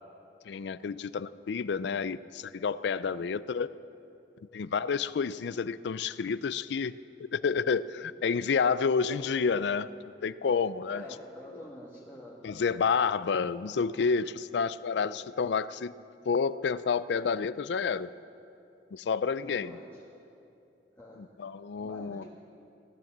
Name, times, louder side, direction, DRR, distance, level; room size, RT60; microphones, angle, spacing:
voice 1, 0.5-3.7 4.5-6.9 7.3-9.9 10.2-11.0 12.4-15.9 16.3-18.1 18.9-19.8 21.2-22.2, left 5 dB, 65° left, 17 dB, 0.4 m, -29 dB
voice 2, 9.0-9.4 10.9-12.4 19.4-20.0 20.9-21.3 21.7-22.3, left 1 dB, 10° left, -5 dB, 1.5 m, -47 dB
16.0 x 12.0 x 7.3 m, 2.8 s
head